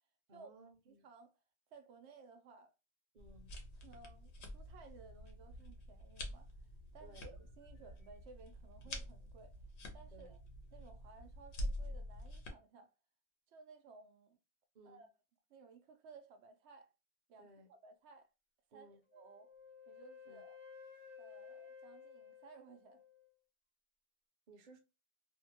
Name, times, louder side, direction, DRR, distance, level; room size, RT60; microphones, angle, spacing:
voice 1, 0.3-1.1 3.1-3.5 7.0-7.3 10.1-10.3 14.7-15.0 17.4-17.7 18.7-19.0 20.3-20.4 24.5-24.8, right 2 dB, 50° right, 0.7 m, -60 dB
voice 2, 0.9-1.3 1.7-2.7 3.8-6.5 6.9-9.6 9.9-10.4 10.7-12.9 13.5-14.4 14.8-15.1 15.5-16.9 17.3-18.3 18.7-19.5 19.9-20.6 21.2-23.0, right 4 dB, 80° right, 0.9 m, -58 dB
sound 1, 3.2-12.5, left 1 dB, 80° left, 1.0 m, -47 dB
Wind instrument woodwind instrument, 19.1-23.3, left 6 dB, 35° left, 0.6 m, -55 dB
2.7 x 2.2 x 2.8 m
omnidirectional pair, 1.1 m